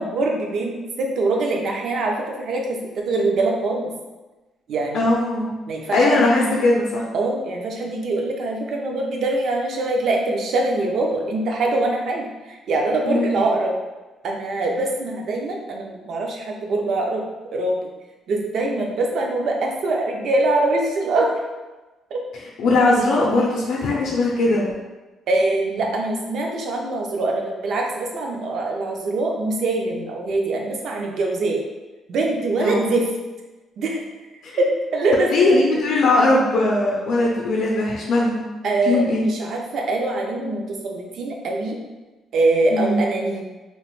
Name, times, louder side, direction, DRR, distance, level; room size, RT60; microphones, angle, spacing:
voice 1, 0.0-3.9 4.7-5.1 5.7-6.5 7.1-13.7 14.2-17.2 17.5-17.8 18.3-21.3 22.1-22.2 25.3-31.6 32.1-33.1 33.8-34.0 34.6-35.6 38.6-41.8 42.3-43.4, right 2 dB, 55° right, 0 dB, 0.4 m, -23 dB
voice 2, 4.9-5.5 5.9-7.1 13.0-13.3 22.6-24.7 25.7-25.8 32.6-32.9 34.4-34.6 35.3-38.4 38.8-39.2 42.7-43.0, left 2 dB, 60° left, -3 dB, 0.5 m, -19 dB
3.0 x 2.0 x 3.0 m, 1.2 s
cardioid pair, 165°, 0 cm